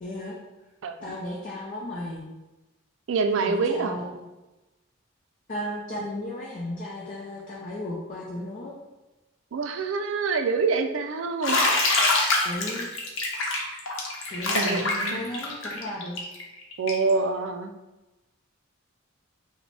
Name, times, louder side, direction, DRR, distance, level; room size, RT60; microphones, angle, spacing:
voice 1, 0.0-0.4 1.0-2.3 3.4-4.1 5.5-8.7 12.4-12.9 14.3-14.8 15.1-16.2, left 1 dB, 40° left, -4 dB, 0.5 m, -34 dB
voice 2, 0.8-1.1 3.1-4.2 9.5-11.7 14.5-15.2 16.8-17.7, right 4 dB, 70° right, 7 dB, 0.4 m, -26 dB
Bathtub (filling or washing), 11.4-17.1, left 2 dB, 70° left, 0.8 m, -25 dB
5.1 x 2.1 x 3.2 m, 1.1 s
head